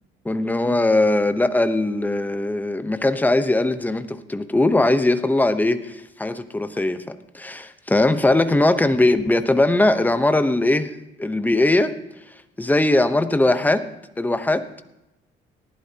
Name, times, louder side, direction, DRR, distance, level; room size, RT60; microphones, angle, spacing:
voice 1, 0.2-10.9 11.2-11.9 12.6-13.8 14.2-14.8, left 2 dB, 10° left, 10 dB, 0.9 m, -20 dB
18.5 x 11.5 x 2.9 m, 0.91 s
cardioid pair, 90°, 20 cm